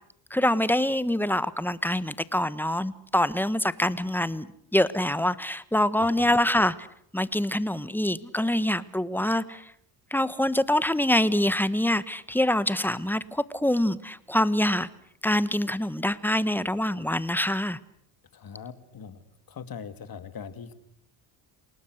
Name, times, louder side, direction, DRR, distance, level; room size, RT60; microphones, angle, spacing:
voice 1, 0.3-4.5 4.7-6.7 7.1-9.6 10.1-14.9 15.2-17.8, left 1 dB, 5° left, 16 dB, 1.2 m, -25 dB
voice 2, 6.0-6.4 18.3-19.2 19.5-20.7, left 7 dB, 50° left, 11 dB, 2.6 m, -41 dB
28.5 x 19.0 x 8.0 m, 0.72 s
cardioid pair, 90°, 45 cm